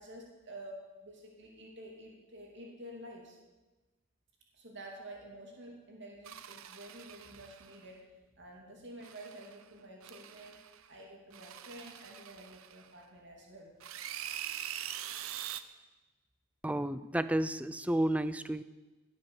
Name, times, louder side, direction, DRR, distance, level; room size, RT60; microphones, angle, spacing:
voice 1, 0.0-3.4 4.5-8.1 8.3-10.6 10.9-13.7, right 1 dB, 55° right, -1 dB, 3.0 m, -49 dB
sound 1, 6.3-7.8 9.0-9.6 10.0-10.9 11.3-13.0 13.8-15.6, right 10 dB, 75° right, 0.7 m, -44 dB
voice 2, 16.6-18.6, right 1 dB, 5° right, 14 dB, 0.4 m, -31 dB
17.5 x 7.9 x 7.3 m, 1.2 s
head